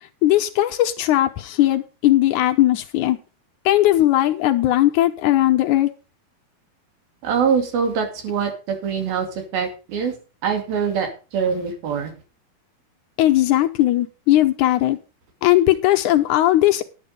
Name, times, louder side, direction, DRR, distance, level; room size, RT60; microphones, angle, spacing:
voice 1, 0.2-3.2 3.7-5.9 13.2-15.0 15.4-16.8, left 14 dB, 85° left, 1.7 m, -18 dB
voice 2, 7.2-9.3 9.5-10.1 10.4-12.1, right 6 dB, 70° right, 4.2 m, -23 dB
10.5 x 9.5 x 5.2 m
omnidirectional pair, 4.5 m